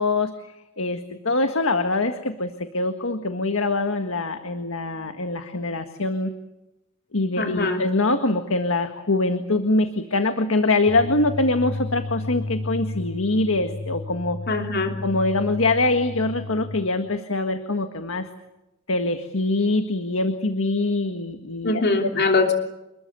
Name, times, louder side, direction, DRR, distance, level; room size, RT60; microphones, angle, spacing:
voice 1, 0.0-6.3 7.1-14.4 15.0-18.3 18.9-21.8, left 2 dB, 75° left, 7 dB, 1.7 m, -24 dB
voice 2, 7.4-7.8 14.5-14.9 21.6-22.5, left 3 dB, 55° left, 3 dB, 3.1 m, -22 dB
sound 1, 10.9-16.8, left 2 dB, 35° left, 7.4 m, -33 dB
28.0 x 21.5 x 8.3 m, 0.91 s
head